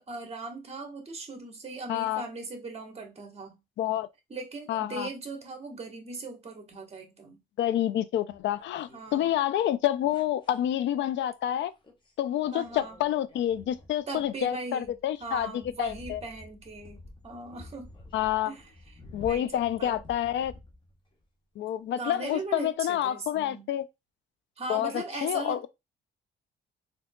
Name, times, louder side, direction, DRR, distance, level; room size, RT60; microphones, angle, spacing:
voice 1, 0.0-3.6 4.3-7.4 8.9-9.3 12.5-13.0 14.1-14.9 15.2-17.9 18.5-20.0 22.0-23.7 24.6-25.7, right 3 dB, 30° right, 1.1 m, -39 dB
voice 2, 1.9-2.2 3.8-4.1 4.7-5.1 7.6-11.7 12.2-15.5 15.8-16.2 18.1-18.5 19.1-20.5 21.6-23.8 24.7-24.9 25.2-25.7, left 12 dB, 70° left, 0.4 m, -28 dB
sound 1, 8.3-9.2 10.1-10.6 11.8-12.1 12.4-21.2 22.2-22.3, left 2 dB, 25° left, 0.9 m, -50 dB
3.6 x 2.7 x 2.2 m
cardioid pair, 90°, 20 cm